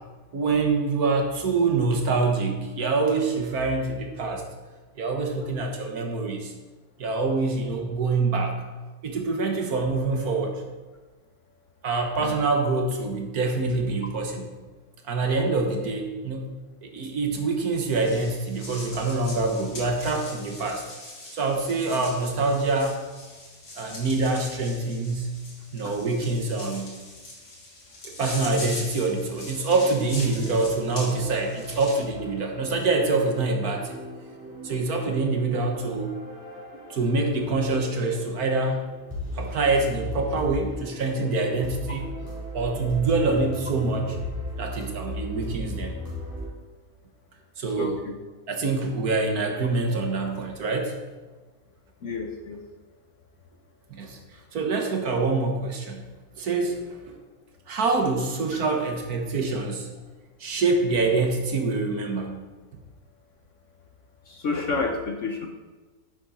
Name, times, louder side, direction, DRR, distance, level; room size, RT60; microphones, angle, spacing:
voice 1, 0.3-4.5 5.0-6.5 7.0-8.6 9.0-10.6 11.8-14.5 15.0-16.5 16.8-20.8 21.3-23.0 23.8-25.3 25.7-26.9 28.0-34.0 34.6-36.1 36.7-38.8 39.3-42.0 42.5-44.2 44.6-45.9 47.6-48.0 48.5-51.0 53.9-54.2 54.5-56.0 56.4-57.1 57.7-59.9 60.4-62.4, right 3 dB, 60° right, 3 dB, 1.6 m, -25 dB
sound 1, 17.7-32.0, left 1 dB, 80° left, 2.9 m, -41 dB
sound 2, 29.0-46.5, equal, 10° right, 3.6 m, -38 dB
voice 2, 47.8-48.1 52.0-52.6 64.3-65.5, left 4 dB, 55° left, 3 dB, 0.9 m, -30 dB
10.5 x 7.6 x 4.2 m, 1.3 s
omnidirectional pair, 1.9 m